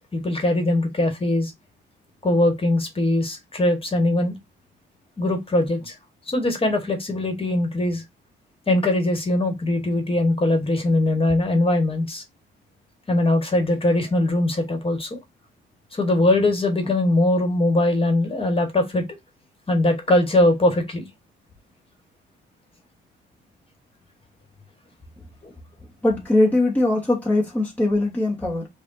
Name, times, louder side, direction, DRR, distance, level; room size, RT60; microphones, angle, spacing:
voice 1, 0.1-1.5 2.2-4.3 5.2-5.9 6.3-8.0 8.7-12.2 13.1-15.2 15.9-19.0 19.7-21.0, left 1 dB, 30° left, 1.5 m, -21 dB
voice 2, 26.0-28.7, left 2 dB, 10° left, 1.3 m, -21 dB
5.1 x 2.5 x 2.6 m
cardioid pair, 90°, 20 cm